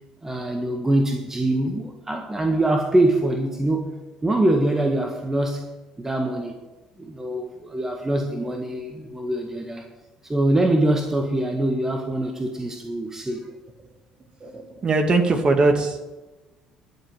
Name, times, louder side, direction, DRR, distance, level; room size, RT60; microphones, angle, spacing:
voice 1, 0.2-3.9 4.2-5.6 6.0-6.6 7.0-9.9 10.2-13.4, right 1 dB, 15° right, 3 dB, 1.7 m, -23 dB
voice 2, 14.4-16.0, right 3 dB, 35° right, 4 dB, 2.2 m, -20 dB
11.5 x 7.7 x 9.1 m, 1.1 s
figure-of-eight pair, 55°, 3 cm